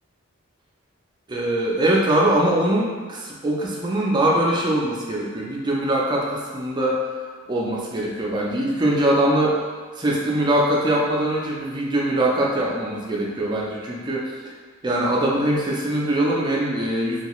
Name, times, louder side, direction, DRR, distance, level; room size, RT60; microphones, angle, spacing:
voice 1, 1.3-7.1 7.5-9.6 10.0-14.5 14.8-17.2, right 1 dB, 20° right, -3 dB, 0.4 m, -22 dB
2.8 x 2.3 x 3.0 m, 1.5 s
head